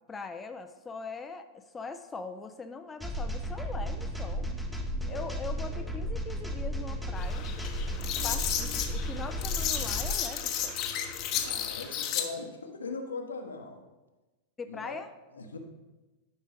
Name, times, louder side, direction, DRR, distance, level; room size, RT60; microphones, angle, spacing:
voice 1, 0.1-4.5 5.1-7.5 8.2-10.7 14.6-15.1, left 4 dB, 15° left, 7 dB, 0.4 m, -41 dB
sound 1, 3.0-10.1, equal, ahead, 0.8 m, -34 dB
sound 2, 3.7-11.7, equal, 50° right, 2.9 m, -50 dB
sound 3, 7.2-12.3, left 9 dB, 40° left, 0.8 m, -33 dB
voice 2, 11.3-13.9 14.7-14.9 15.3-15.6, left 4 dB, 75° left, 4 dB, 0.9 m, -40 dB
11.5 x 5.2 x 3.4 m, 1.1 s
figure-of-eight pair, 90°, 0 cm